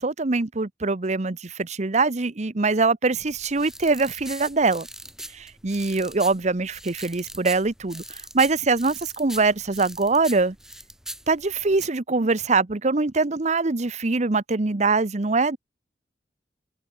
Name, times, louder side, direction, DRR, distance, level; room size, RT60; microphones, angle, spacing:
voice 1, 0.0-4.9 5.3-10.6 11.3-15.6, right 3 dB, 40° right, 0.9 m, -23 dB
sound 1, 3.2-11.9, right 1 dB, 5° right, 5.2 m, -41 dB
head